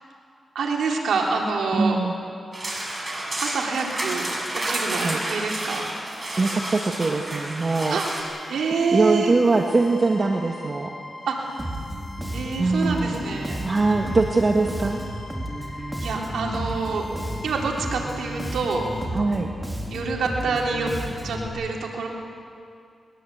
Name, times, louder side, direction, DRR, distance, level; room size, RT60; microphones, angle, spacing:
voice 1, 0.5-2.0 3.4-4.3 4.5-5.8 7.9-9.4 11.3-11.4 12.3-13.6 15.7-17.1 17.4-18.8 19.9-20.9 21.2-22.1, right 4 dB, 90° right, -1 dB, 3.4 m, -27 dB
voice 2, 1.7-2.1 5.0-5.2 6.4-8.0 8.9-10.9 12.6-13.2 13.6-15.0 19.1-19.5, right 3 dB, 45° right, 2 dB, 1.7 m, -22 dB
sound 1, 2.5-8.2, right 1 dB, 25° right, 6.7 m, -30 dB
sound 2, 7.8-19.1, left 1 dB, 35° left, 6.8 m, -43 dB
Bass guitar, 11.6-21.5, equal, 10° right, 4.4 m, -32 dB
22.0 x 21.5 x 8.3 m, 2.3 s
cardioid pair, 65°, 0 cm